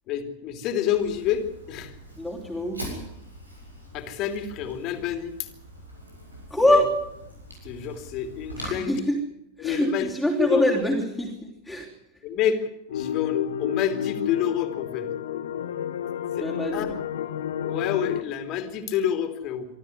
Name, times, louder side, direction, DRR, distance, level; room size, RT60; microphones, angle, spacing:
voice 1, 0.1-1.9 3.9-5.5 6.7-6.8 7.6-8.9 9.6-10.1 10.4-10.6 12.2-15.1 16.4-16.5 16.7-16.9 17.6-19.7, left 9 dB, 40° left, 8 dB, 3.0 m, -28 dB
Fire, 0.9-8.7, equal, 85° right, 7.4 m, -42 dB
voice 2, 2.2-2.9 6.5-6.9 8.6-9.2 9.6-11.9 16.4-16.9, left 1 dB, ahead, -2 dB, 3.7 m, -24 dB
sound 1, 12.9-18.2, left 9 dB, 60° left, 1.3 m, -30 dB
25.0 x 13.5 x 9.7 m, 0.81 s
figure-of-eight pair, 90°, 0 cm